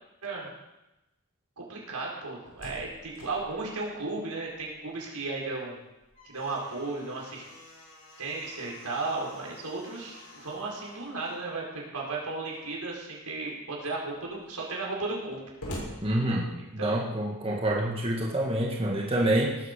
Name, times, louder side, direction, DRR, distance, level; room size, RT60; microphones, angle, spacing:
voice 1, 1.6-5.8 6.2-7.4 8.2-15.4 16.5-17.0, right 3 dB, 85° right, -2 dB, 4.8 m, -35 dB
Slam, 2.2-5.0 5.3-5.4 5.9-11.5 12.4-12.9 13.5-13.6 13.8-16.9, equal, 80° left, 6.5 m, -47 dB
voice 2, 16.0-19.6, right 1 dB, 25° right, -1 dB, 1.8 m, -27 dB
18.0 x 8.4 x 6.8 m, 0.97 s
head